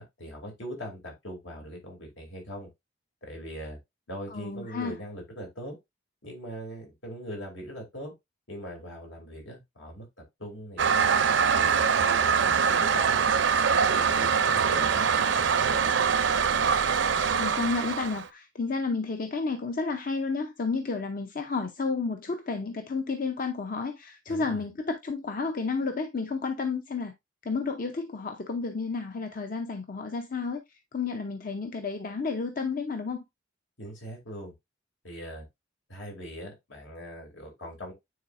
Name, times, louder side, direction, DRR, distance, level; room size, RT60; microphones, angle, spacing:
voice 1, 0.0-2.7 3.2-3.8 4.1-5.8 6.2-8.1 8.5-10.1 10.4-11.1 11.6-15.8 24.3-24.6 33.8-34.5 35.0-35.4 35.9-37.9, equal, 75° left, 2.7 m, -41 dB
voice 2, 4.3-5.0 17.2-27.1 27.4-30.6 30.9-33.2, left 4 dB, 45° left, 0.6 m, -31 dB
Toilet flush, 10.8-18.3, right 6 dB, 65° right, 0.5 m, -24 dB
9.4 x 4.0 x 2.5 m
head